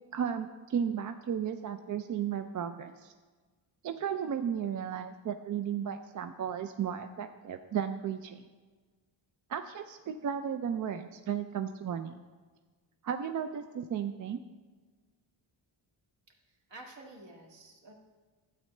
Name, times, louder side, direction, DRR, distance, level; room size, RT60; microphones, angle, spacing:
voice 1, 0.1-3.1 3.8-8.4 9.5-12.1 13.0-14.4, right 8 dB, 40° right, 8 dB, 0.4 m, -34 dB
voice 2, 16.3-17.9, right 2 dB, 60° right, 0 dB, 1.9 m, -51 dB
12.0 x 8.5 x 3.2 m, 1.4 s
cardioid pair, 110°, 49 cm